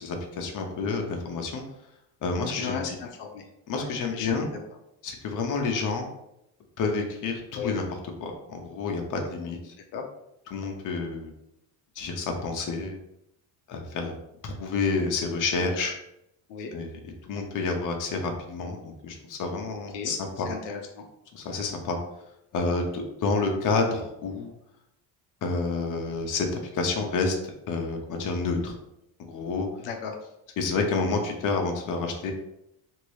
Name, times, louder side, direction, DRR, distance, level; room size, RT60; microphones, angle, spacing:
voice 1, 0.0-1.6 2.2-2.8 3.7-4.5 5.0-6.1 6.8-7.8 8.2-9.7 10.5-11.3 12.0-13.0 13.7-14.1 14.4-15.9 16.7-16.9 17.2-20.5 21.3-22.0 22.5-24.5 25.4-26.5 26.7-27.4 27.7-28.7 29.3-29.7 30.6-32.3, left 4 dB, 50° left, 3 dB, 0.7 m, -29 dB
voice 2, 2.5-3.5 3.8-4.5 7.5-7.7 9.9-10.1 15.6-15.7 16.5-16.7 19.9-21.1 23.8-24.0 29.8-30.2, left 6 dB, 85° left, 3 dB, 0.6 m, -36 dB
2.9 x 2.7 x 3.1 m, 0.82 s
cardioid pair, 105°, 42 cm